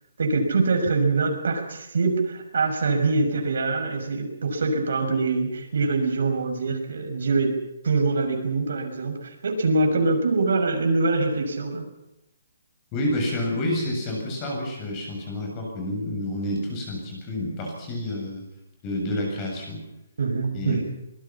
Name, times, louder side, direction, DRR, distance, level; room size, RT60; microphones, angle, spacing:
voice 1, 0.2-7.5 7.8-11.8 20.2-20.8, right 3 dB, 65° right, 4 dB, 6.2 m, -24 dB
voice 2, 12.9-18.4 18.8-19.8 20.5-20.8, left 1 dB, 20° left, 1 dB, 7.6 m, -29 dB
24.5 x 21.5 x 5.8 m, 0.88 s
hypercardioid pair, 170°, 0 cm